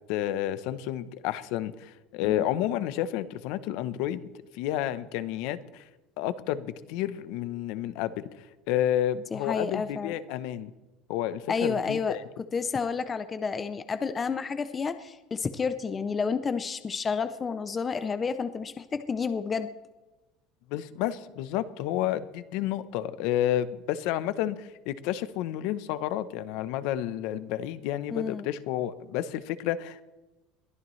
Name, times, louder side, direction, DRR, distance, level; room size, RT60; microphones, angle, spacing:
voice 1, 0.1-5.8 6.2-8.2 8.7-10.7 11.1-12.2 20.7-30.0, left 12 dB, 60° left, 14 dB, 0.8 m, -30 dB
voice 2, 9.3-10.1 11.5-12.2 12.5-19.7 28.1-28.5, left 5 dB, 15° left, 11 dB, 0.5 m, -30 dB
22.0 x 13.5 x 3.2 m, 1.1 s
cardioid pair, 180°, 0 cm